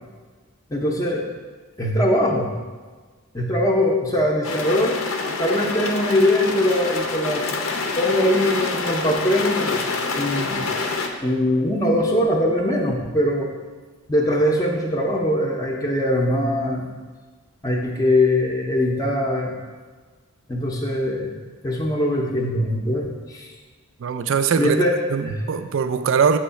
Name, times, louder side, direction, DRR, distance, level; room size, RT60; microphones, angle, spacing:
voice 1, 0.7-1.2 1.8-2.6 3.3-5.0 5.4-7.4 8.0-9.8 10.1-10.7 11.2-13.5 14.1-16.9 17.6-19.6 20.5-23.5 24.6-25.0 25.2-25.4, left 1 dB, 15° left, -1 dB, 0.6 m, -21 dB
sound 1, 4.4-11.1, left 3 dB, 70° left, 0.6 m, -26 dB
voice 2, 24.0-24.8 25.1-26.4, right 6 dB, 60° right, 10 dB, 0.3 m, -21 dB
7.0 x 3.1 x 5.6 m, 1.4 s
head